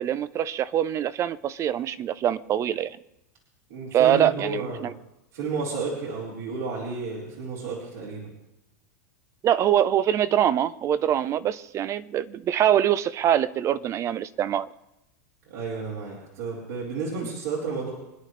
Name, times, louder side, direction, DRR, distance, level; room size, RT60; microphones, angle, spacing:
voice 1, 0.0-3.0 3.9-4.9 9.4-14.7, right 10 dB, 35° right, 0.6 m, -24 dB
voice 2, 3.7-4.9 5.3-8.3 15.4-17.9, right 4 dB, 70° right, 4.4 m, -32 dB
25.5 x 10.0 x 3.3 m
hypercardioid pair, 110°, 9 cm